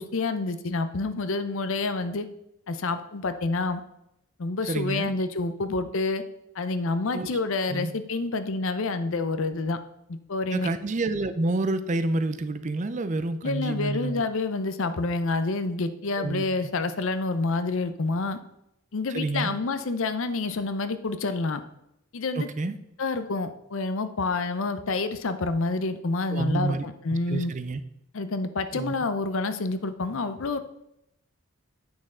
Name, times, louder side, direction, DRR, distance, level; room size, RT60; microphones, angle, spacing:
voice 1, 0.0-2.3 2.7-3.8 4.4-6.2 6.5-9.8 10.1-10.7 13.4-18.4 18.9-21.6 22.1-22.5 23.0-27.5 28.1-30.6, left 3 dB, 60° left, 11 dB, 0.6 m, -28 dB
voice 2, 4.7-5.1 7.1-7.3 7.7-7.9 10.5-14.2 16.2-16.4 19.1-19.6 22.3-22.7 26.3-26.9 27.3-27.8 28.7-28.9, right 2 dB, 35° right, 11 dB, 0.4 m, -28 dB
8.5 x 6.2 x 3.7 m, 0.82 s
head